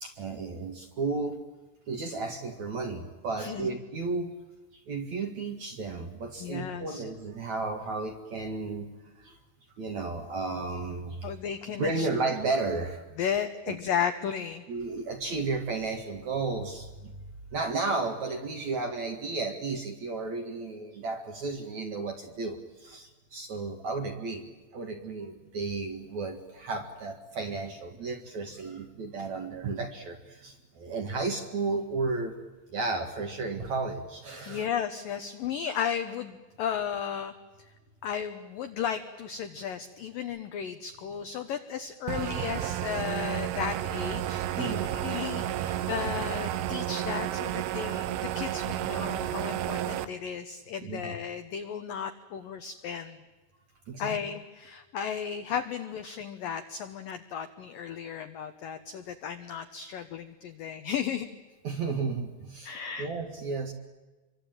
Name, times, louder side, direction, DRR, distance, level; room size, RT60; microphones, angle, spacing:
voice 1, 0.0-1.4 1.9-4.4 4.7-8.9 9.2-9.4 9.8-11.3 11.8-13.0 13.7-13.8 14.7-17.1 17.5-24.4 24.7-32.4 32.7-34.7 44.6-45.1 50.8-51.1 53.9-54.2 61.6-63.7, right 3 dB, 55° right, 4 dB, 2.3 m, -33 dB
voice 2, 3.4-3.8 6.4-7.0 11.2-12.1 13.2-14.6 34.5-37.3 38.0-53.2 54.0-61.3 62.6-63.1, left 8 dB, 85° left, 8 dB, 2.0 m, -34 dB
sound 1, 42.1-50.1, right 12 dB, 80° right, 3.5 m, -31 dB
26.5 x 24.0 x 9.1 m, 1.2 s
omnidirectional pair, 5.6 m